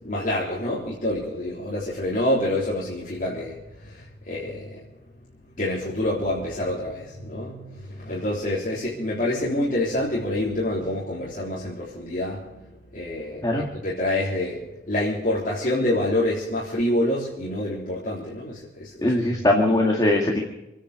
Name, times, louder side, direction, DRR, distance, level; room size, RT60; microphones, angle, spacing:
voice 1, 0.0-3.6 3.8-4.8 5.6-12.6 12.9-19.4, left 1 dB, 50° left, -5 dB, 3.6 m, -27 dB
voice 2, 19.0-20.4, left 1 dB, 20° left, 0 dB, 2.1 m, -20 dB
26.5 x 10.0 x 5.1 m, 0.96 s
head